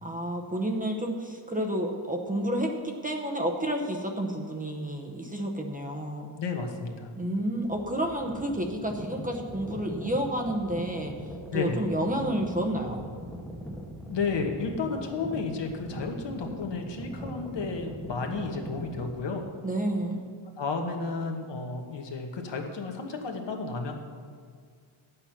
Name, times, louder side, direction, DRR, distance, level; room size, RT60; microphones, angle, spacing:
voice 1, 0.0-6.3 7.2-11.1 11.5-13.0 19.6-20.3, right 1 dB, 15° right, 1 dB, 0.9 m, -30 dB
voice 2, 6.4-7.1 11.5-11.8 14.1-19.4 20.6-23.9, left 4 dB, 60° left, 3 dB, 1.4 m, -32 dB
sound 1, 7.6-19.1, equal, ahead, 1.1 m, -40 dB
10.5 x 8.5 x 5.8 m, 2.1 s
wide cardioid pair, 165°, 49 cm